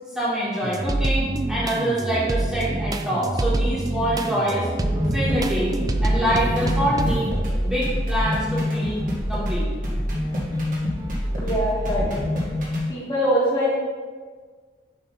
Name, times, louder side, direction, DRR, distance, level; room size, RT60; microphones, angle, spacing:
voice 1, 0.1-4.7 5.1-5.7 6.0-7.3 7.6-9.0 9.3-9.7, right 1 dB, 5° right, -10 dB, 1.8 m, -25 dB
sound 1, 0.6-8.0 8.5-9.4 10.1-10.2 10.5-11.5, right 2 dB, 20° right, 0.3 m, -26 dB
sound 2, 4.8-12.9, left 1 dB, 50° right, 1.6 m, -26 dB
voice 2, 11.4-12.1 12.9-13.7, equal, 25° left, -8 dB, 1.8 m, -23 dB
7.1 x 3.6 x 5.6 m, 1.5 s
head